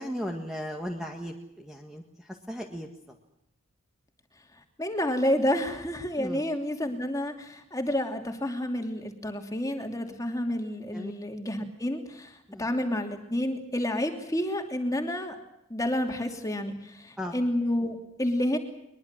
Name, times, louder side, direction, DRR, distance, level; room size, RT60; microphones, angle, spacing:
voice 1, 0.0-2.0 2.5-2.9 6.2-6.4 10.9-11.1 12.5-12.7 17.2-17.3, equal, ahead, 2 dB, 1.8 m, -36 dB
voice 2, 4.8-15.3 15.7-18.6, left 1 dB, 15° left, 4 dB, 2.8 m, -29 dB
22.5 x 22.0 x 7.5 m, 0.83 s
head